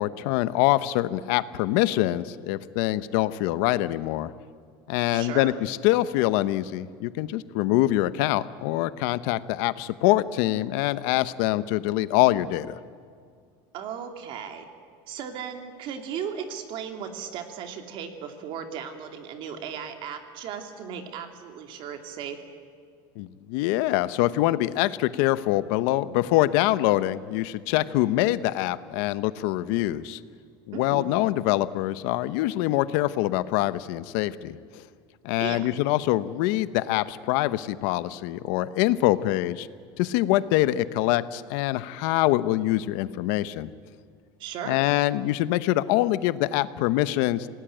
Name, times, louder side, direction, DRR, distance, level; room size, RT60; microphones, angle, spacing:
voice 1, 0.0-4.3 4.9-12.8 23.2-30.2 30.7-34.8 35.2-39.7 40.0-43.7 44.6-47.5, left 16 dB, 70° left, 15 dB, 0.9 m, -24 dB
voice 2, 5.1-5.5 13.7-14.7 15.1-22.4 30.7-31.1 35.4-35.7 44.4-44.8, right 8 dB, 45° right, 6 dB, 2.8 m, -36 dB
27.0 x 18.5 x 9.1 m, 2.1 s
cardioid pair, 160°, 12 cm